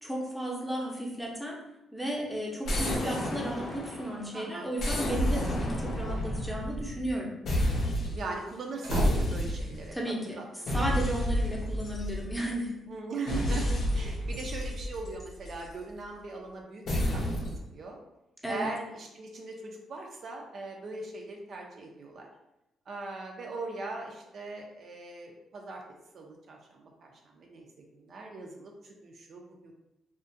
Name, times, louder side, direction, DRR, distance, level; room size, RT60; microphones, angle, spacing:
voice 1, 0.0-1.6 1.9-7.4 9.9-12.7 18.4-18.7, right 1 dB, ahead, -3 dB, 0.6 m, -34 dB
sound 1, 2.6-4.2 4.8-7.1 7.5-8.3 8.9-9.9 10.7-12.5 13.3-15.7 16.9-17.6, equal, 65° left, 0.6 m, -30 dB
voice 2, 4.3-4.8 8.1-10.0 10.3-10.9 12.9-16.8 17.1-18.0 18.5-22.3 22.9-25.8 26.1-27.7 27.9-29.7, right 3 dB, 55° right, 1 dB, 0.4 m, -40 dB
sound 2, 8.7-9.9, equal, 85° right, 0.7 m, -32 dB
2.4 x 2.1 x 2.6 m, 0.90 s
cardioid pair, 90°, 0 cm